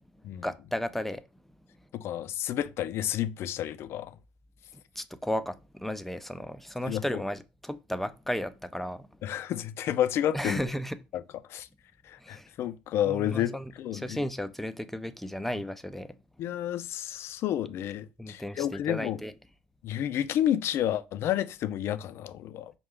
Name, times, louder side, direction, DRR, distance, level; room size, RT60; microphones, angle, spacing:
voice 1, 0.4-1.2 5.0-9.1 10.3-11.0 12.2-12.5 13.0-16.2 18.2-19.3, equal, 5° left, 0.5 m, -34 dB
voice 2, 1.9-4.2 6.9-7.2 9.2-10.6 11.1-11.2 11.5-11.7 12.0-14.2 16.4-19.2 19.8-22.7, left 11 dB, 60° left, 0.4 m, -30 dB
5.3 x 2.3 x 3.6 m
hypercardioid pair, 65°, 5 cm